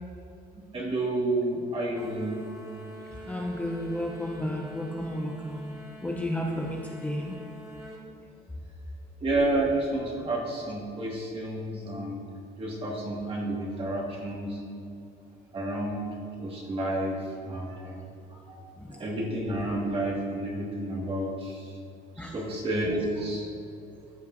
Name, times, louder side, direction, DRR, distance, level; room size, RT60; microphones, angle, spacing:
voice 1, 0.7-2.4 9.2-12.2 12.6-14.6 15.5-18.6 18.9-21.8 22.2-23.5, right 1 dB, 35° right, -2 dB, 2.0 m, -30 dB
sound 1, 2.0-8.0, right 1 dB, 15° right, 1.8 m, -45 dB
voice 2, 3.3-7.4 18.8-19.0 22.2-22.4, left 1 dB, 10° left, -1 dB, 0.7 m, -33 dB
14.5 x 5.4 x 2.7 m, 2.5 s
cardioid pair, 110°, 17 cm